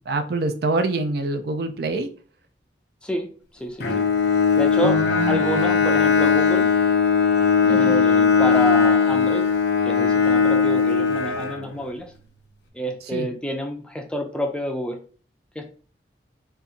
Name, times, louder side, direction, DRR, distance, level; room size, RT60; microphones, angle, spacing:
voice 1, 0.1-2.1 4.8-5.8 7.6-8.0 13.1-13.3, right 3 dB, 60° right, 7 dB, 0.4 m, -26 dB
voice 2, 3.5-4.1 4.5-5.0 5.3-6.7 7.7-9.5 9.8-12.1 12.7-15.0 15.6-15.7, equal, 5° left, 3 dB, 0.4 m, -28 dB
Bowed string instrument, 3.8-12.0, left 6 dB, 70° left, 0.6 m, -19 dB
3.6 x 2.5 x 2.8 m, 0.41 s
head